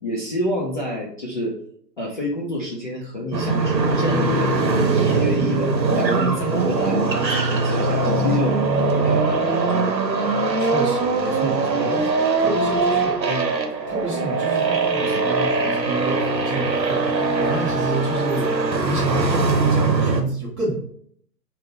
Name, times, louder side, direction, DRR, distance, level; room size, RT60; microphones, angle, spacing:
voice 1, 0.0-1.6 2.0-4.5 4.9-8.6 8.9-9.9 12.5-12.6 15.1-15.2, left 1 dB, 30° left, -4 dB, 0.4 m, -28 dB
sound 1, 3.3-20.2, right 3 dB, 85° right, 0.8 m, -21 dB
voice 2, 10.6-18.5 18.8-20.8, right 2 dB, 15° right, -5 dB, 0.7 m, -29 dB
3.6 x 2.2 x 3.9 m, 0.63 s
figure-of-eight pair, 125°, 49 cm